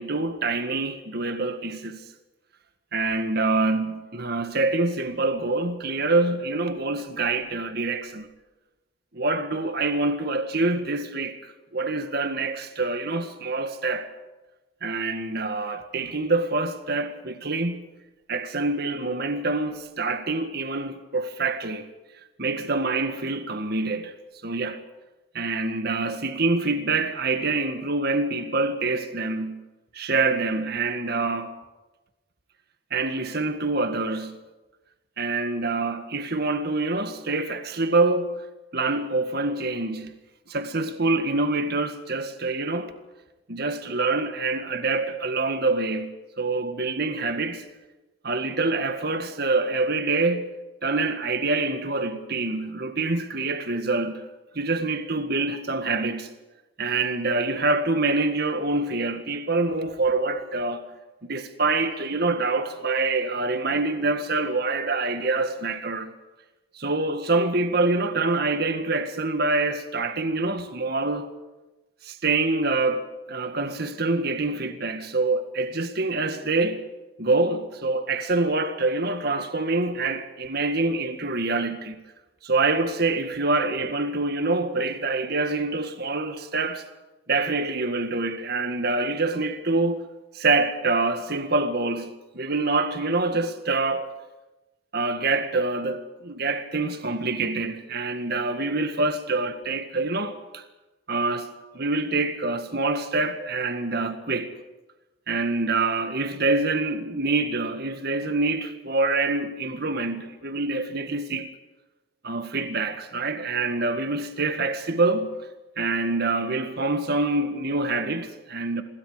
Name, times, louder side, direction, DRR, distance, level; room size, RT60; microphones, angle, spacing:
voice 1, 0.0-2.0 2.9-8.3 9.1-14.1 14.8-17.8 18.3-21.9 22.4-24.1 24.4-24.8 25.3-29.6 29.9-31.5 32.9-34.4 35.2-38.4 38.7-40.1 40.5-42.9 43.5-47.6 48.2-50.5 50.8-54.2 54.6-56.3 56.8-60.9 61.2-66.1 66.8-71.3 72.0-76.8 77.2-82.0 82.4-86.8 87.3-90.0 90.3-94.1 94.9-100.6 101.1-104.5 105.3-111.5 112.2-115.4 115.8-118.8, right 3 dB, 55° right, 1.9 m, -26 dB
27.5 x 22.0 x 5.1 m
head